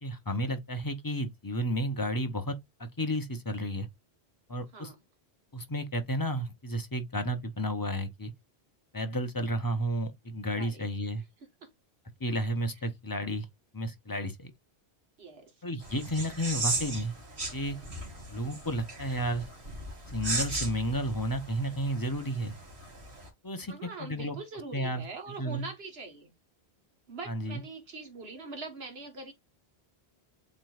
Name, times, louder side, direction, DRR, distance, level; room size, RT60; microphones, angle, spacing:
voice 1, 0.0-2.5 2.8-3.9 4.5-4.9 5.5-8.3 8.9-11.2 12.2-13.5 13.7-14.5 15.6-17.1 17.5-17.8 18.3-19.5 20.1-22.5 23.4-24.4 24.7-25.7 27.3-27.6, equal, 25° left, 0.6 m, -32 dB
voice 2, 10.6-10.9 11.6-11.7 15.2-15.5 23.7-26.3 27.1-29.3, right 3 dB, 70° right, 1.5 m, -43 dB
sound 1, 15.8-23.3, right 2 dB, 90° right, 2.3 m, -37 dB
7.5 x 3.0 x 2.3 m
omnidirectional pair, 1.1 m